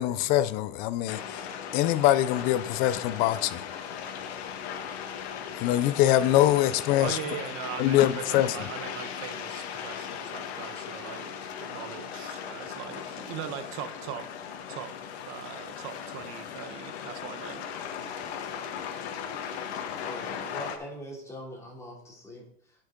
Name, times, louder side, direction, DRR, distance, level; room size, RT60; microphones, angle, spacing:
voice 1, 0.0-1.4 1.7-3.7 5.6-7.2 7.8-8.5, left 13 dB, 30° left, 0.4 m, -23 dB
sound 1, 1.1-20.8, left 8 dB, 70° left, 1.4 m, -38 dB
voice 2, 7.0-14.3 14.7-15.0 15.3-17.7, right 9 dB, 40° right, 1.0 m, -40 dB
voice 3, 20.0-22.9, equal, 10° left, 2.9 m, -42 dB
10.5 x 6.3 x 3.8 m
supercardioid pair, 145°, 33 cm